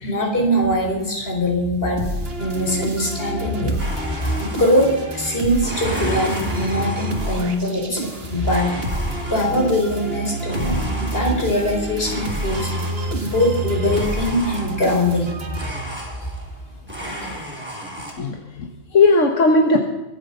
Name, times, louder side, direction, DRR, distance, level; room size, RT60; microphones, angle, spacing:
voice 1, 0.0-2.0 2.4-3.8 4.2-8.7 9.3-12.7 13.2-15.3 15.6-15.7 17.2-17.3, equal, 50° left, 0 dB, 4.4 m, -22 dB
sound 1, 2.0-16.2, right 1 dB, 50° right, 2.0 m, -29 dB
Domestic sounds home sounds, 3.8-5.2 5.6-7.7 8.4-9.7 10.5-11.6 12.0-13.3 13.9-15.0 15.5-16.6 16.9-18.1, equal, 10° right, 4.1 m, -34 dB
voice 2, 18.2-19.8, left 3 dB, 85° left, 3 dB, 1.6 m, -17 dB
24.0 x 8.3 x 5.6 m, 1.0 s
omnidirectional pair, 1.3 m